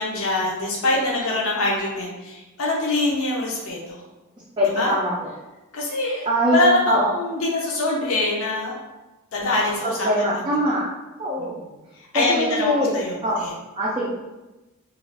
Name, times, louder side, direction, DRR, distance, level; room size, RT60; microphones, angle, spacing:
voice 1, 0.0-3.8 4.6-4.9 5.7-8.7 9.3-10.4 11.4-11.6 12.1-13.5, left 2 dB, 65° left, -2 dB, 0.5 m, -24 dB
voice 2, 4.6-5.1 6.3-7.1 9.8-10.9 11.2-11.6 12.1-12.9 13.2-13.5 13.8-14.1, equal, 20° right, -6 dB, 0.4 m, -22 dB
2.3 x 2.3 x 3.3 m, 1.1 s
head